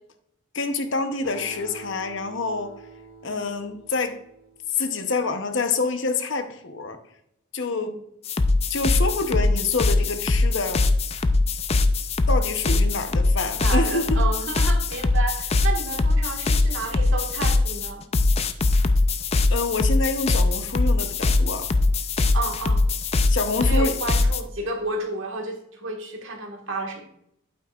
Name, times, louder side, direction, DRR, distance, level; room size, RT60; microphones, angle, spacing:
voice 1, 0.5-2.7 3.2-4.2 4.7-7.0 7.5-8.0 8.7-10.9 12.3-14.0 19.5-21.7 23.3-23.9, left 3 dB, 55° left, 8 dB, 0.8 m, -27 dB
Acoustic guitar, 1.2-5.0, right 3 dB, 45° right, 2.1 m, -45 dB
sound 1, 8.2-24.4, left 2 dB, 30° left, 0.3 m, -22 dB
voice 2, 13.6-18.0 22.3-22.8 23.6-27.0, right 3 dB, 65° right, 2 dB, 1.6 m, -31 dB
8.6 x 8.5 x 2.4 m, 0.76 s
head